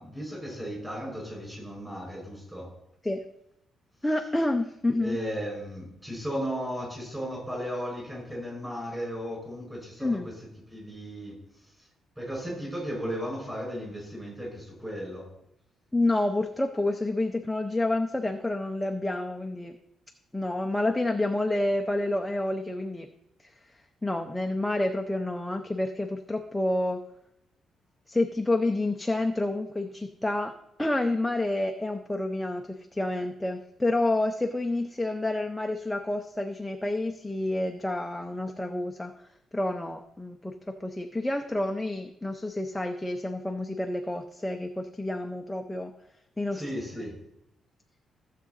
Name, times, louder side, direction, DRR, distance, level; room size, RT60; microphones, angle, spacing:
voice 1, 0.0-2.7 5.0-10.3 10.7-11.4 12.2-15.3 46.5-47.2, equal, 10° right, -2 dB, 5.4 m, -35 dB
voice 2, 4.0-5.2 10.0-10.3 15.9-19.8 20.3-23.1 23.4-23.5 24.0-27.0 28.1-30.5 30.8-39.1 39.5-45.9 46.4-46.6, left 2 dB, 5° left, 4 dB, 0.6 m, -29 dB
15.5 x 7.4 x 4.0 m, 0.78 s
cardioid pair, 165°, 0 cm